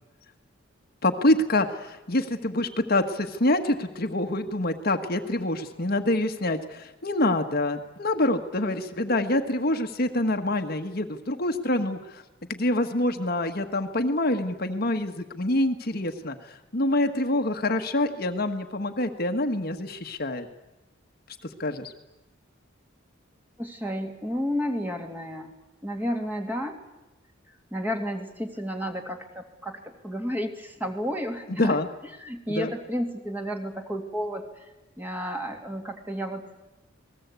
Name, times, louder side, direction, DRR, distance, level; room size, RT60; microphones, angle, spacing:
voice 1, 1.0-12.2 12.5-20.5 21.6-21.9 31.6-31.9 32.5-32.7, left 1 dB, 50° left, 6 dB, 1.5 m, -26 dB
voice 2, 23.6-25.5 25.8-26.8 27.7-31.8 32.2-34.7 35.0-36.5, equal, 10° right, 3 dB, 2.6 m, -31 dB
28.5 x 20.5 x 8.3 m, 1.0 s
head